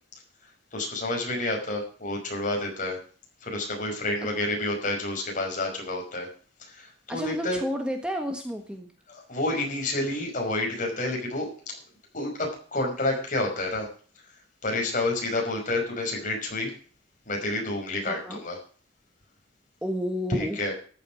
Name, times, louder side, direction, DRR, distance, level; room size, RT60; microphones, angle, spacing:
voice 1, 0.7-3.0 3.4-6.3 6.6-7.6 9.1-11.8 12.1-13.9 14.6-16.7 17.3-18.6 20.3-20.7, left 2 dB, 45° left, 1 dB, 5.5 m, -29 dB
voice 2, 7.1-8.9 18.1-18.4 19.8-20.6, equal, 5° right, 4 dB, 1.4 m, -31 dB
14.0 x 8.3 x 6.1 m, 0.42 s
head